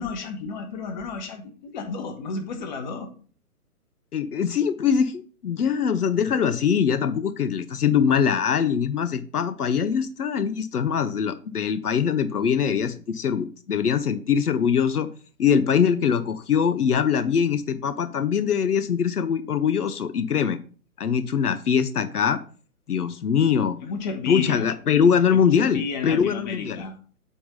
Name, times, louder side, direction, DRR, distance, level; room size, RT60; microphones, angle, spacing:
voice 1, 0.0-3.1 23.8-24.7 25.3-27.0, left 4 dB, 30° left, 6 dB, 1.3 m, -32 dB
voice 2, 4.1-15.1 15.4-20.6 21.0-22.4 22.9-23.8 24.3-26.8, left 7 dB, 80° left, 13 dB, 0.8 m, -22 dB
8.5 x 3.6 x 5.5 m, 0.41 s
hypercardioid pair, 145°, 45 cm